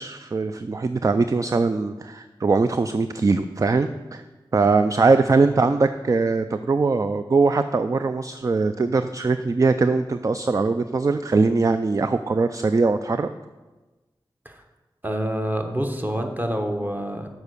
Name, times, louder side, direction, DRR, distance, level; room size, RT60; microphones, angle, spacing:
voice 1, 0.0-4.2 4.5-13.3, right 3 dB, 35° right, 10 dB, 0.3 m, -21 dB
voice 2, 15.0-17.3, right 1 dB, 20° right, 4 dB, 1.1 m, -27 dB
7.1 x 4.6 x 6.6 m, 1.2 s
cardioid pair, 45°, 9 cm